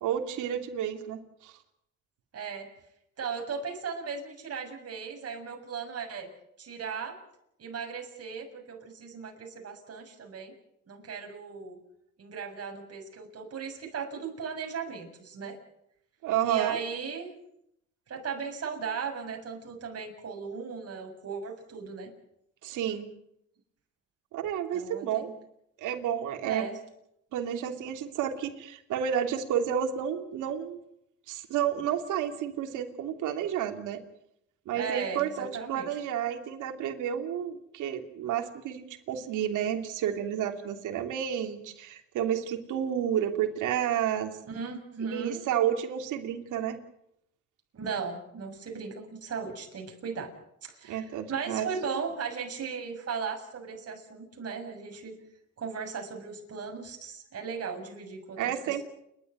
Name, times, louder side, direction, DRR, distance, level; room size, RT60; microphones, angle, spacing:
voice 1, 0.0-1.5 16.2-16.8 22.6-23.1 24.3-25.3 25.8-26.7 27.3-30.8 31.3-34.0 34.7-44.4 45.0-46.8 50.9-51.7 58.4-58.8, right 9 dB, 90° right, 6 dB, 2.9 m, -31 dB
voice 2, 2.3-2.7 3.2-6.3 6.6-7.2 7.6-10.5 10.9-11.8 12.2-15.6 16.4-17.3 18.1-22.1 24.7-25.3 26.4-26.8 34.7-35.9 44.5-45.4 47.7-50.3 50.6-55.2 55.6-58.8, right 6 dB, 55° right, 3 dB, 7.1 m, -37 dB
29.5 x 12.5 x 9.5 m, 0.78 s
cardioid pair, 90°, 30 cm